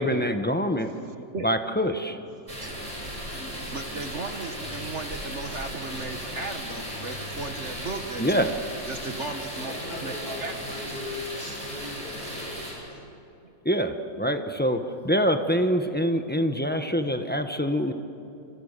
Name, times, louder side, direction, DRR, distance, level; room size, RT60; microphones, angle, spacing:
voice 1, 0.0-0.9 1.4-2.2 8.2-8.5 13.6-14.8 15.0-17.9, equal, 5° left, 6 dB, 0.8 m, -25 dB
voice 2, 0.8-1.5 2.4-8.5 8.9-10.1 10.4-10.5 10.9-11.0, right 3 dB, 45° right, 7 dB, 1.2 m, -37 dB
sound 1, 2.5-12.7, equal, 15° right, 7.9 m, -36 dB
voice 3, 9.5-13.1, left 2 dB, 55° left, -2 dB, 8.3 m, -39 dB
27.5 x 27.0 x 6.8 m, 2.9 s
omnidirectional pair, 2.1 m